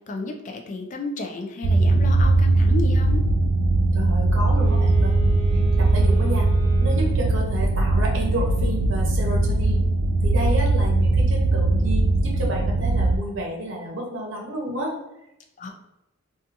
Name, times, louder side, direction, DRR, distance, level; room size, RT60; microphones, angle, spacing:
voice 1, 0.1-3.2 15.6-15.7, left 3 dB, 35° left, 3 dB, 0.3 m, -32 dB
sound 1, 1.6-13.2, right 2 dB, 80° right, 0.3 m, -20 dB
voice 2, 3.9-5.2 5.5-6.5 6.8-9.9 10.2-14.9, equal, 60° right, -2 dB, 0.8 m, -30 dB
Wind instrument woodwind instrument, 4.5-7.4, right 1 dB, 15° right, 1.0 m, -38 dB
2.6 x 2.4 x 2.5 m, 0.87 s
head